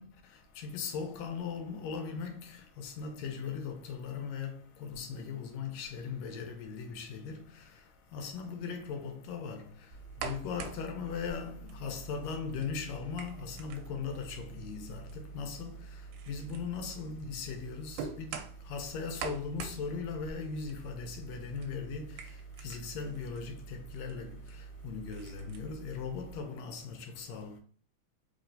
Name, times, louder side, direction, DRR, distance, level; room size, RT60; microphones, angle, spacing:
voice 1, 0.0-27.6, left 5 dB, 75° left, 1.8 m, -39 dB
sound 1, 9.9-26.4, right 5 dB, 85° right, 2.0 m, -45 dB
4.3 x 3.1 x 2.6 m
omnidirectional pair, 3.4 m